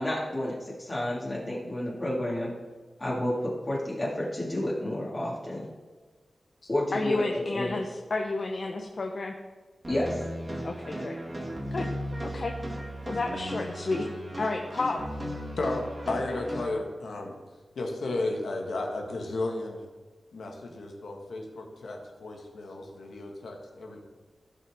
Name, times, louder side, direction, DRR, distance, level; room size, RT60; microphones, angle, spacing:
voice 1, 0.0-2.5 3.0-5.7 6.7-7.8 9.9-10.2, left 1 dB, 30° left, -5 dB, 2.2 m, -30 dB
voice 2, 6.9-9.3 10.6-11.2 11.7-11.8 12.2-12.5 13.1-14.1 14.4-15.0, left 3 dB, 55° left, 2 dB, 0.8 m, -31 dB
sound 1, 9.8-16.7, equal, 30° right, 2.0 m, -36 dB
voice 3, 15.6-17.3 17.8-19.8 20.3-24.0, left 2 dB, 85° left, 1 dB, 1.6 m, -33 dB
15.0 x 5.7 x 3.6 m, 1.3 s
wide cardioid pair, 100°, 0 cm